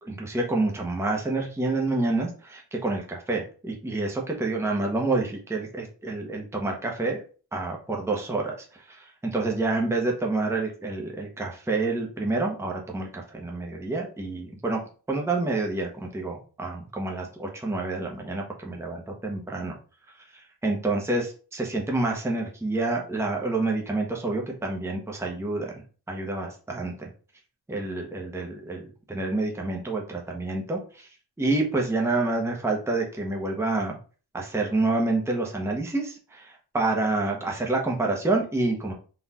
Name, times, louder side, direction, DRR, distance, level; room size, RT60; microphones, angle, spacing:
voice 1, 0.0-7.2 7.5-14.8 15.1-19.0 19.2-19.8 20.3-25.8 26.1-27.1 27.7-31.1 31.4-34.0 34.3-38.9, right 2 dB, 5° right, 0 dB, 0.8 m, -28 dB
4.0 x 2.4 x 4.1 m, 0.38 s
wide cardioid pair, 105°, 40 cm